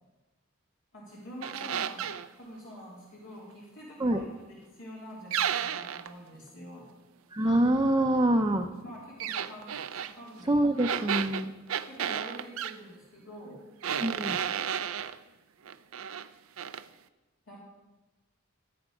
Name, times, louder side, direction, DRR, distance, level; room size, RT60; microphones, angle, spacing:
voice 1, 0.9-6.9 8.8-11.0 11.8-13.7 17.5-17.6, equal, 65° left, -5 dB, 2.7 m, -46 dB
sound 1, 1.4-2.3 5.3-6.1 9.2-10.1 10.8-12.8 13.8-15.2 15.6-16.3 16.6-16.8, right 9 dB, 80° right, 0.5 m, -32 dB
voice 2, 7.3-8.7 10.5-11.5 14.0-14.4, right 1 dB, 20° right, 1 dB, 0.6 m, -25 dB
14.0 x 9.5 x 5.1 m, 1.1 s
head